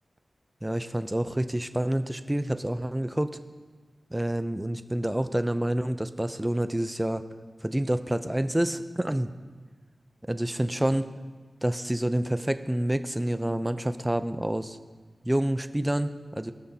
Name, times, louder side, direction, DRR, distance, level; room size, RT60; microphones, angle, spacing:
voice 1, 0.6-3.3 4.1-7.2 7.6-9.3 10.3-11.1 11.6-14.8 15.2-16.5, right 1 dB, 10° right, 10 dB, 0.6 m, -28 dB
20.0 x 12.5 x 2.8 m, 1.4 s
wide cardioid pair, 115°, 0 cm